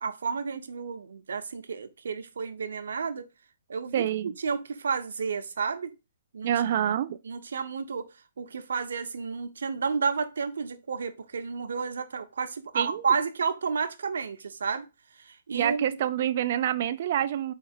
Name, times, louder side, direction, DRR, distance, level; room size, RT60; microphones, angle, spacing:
voice 1, 0.0-3.3 3.7-5.9 6.3-6.5 7.2-8.1 8.4-14.9 15.2-15.9, right 5 dB, 80° right, 0.7 m, -31 dB
voice 2, 3.9-4.3 6.4-7.2 12.7-13.0 15.5-17.5, right 10 dB, 50° right, 0.3 m, -27 dB
4.5 x 3.1 x 3.5 m
hypercardioid pair, 150°, 0 cm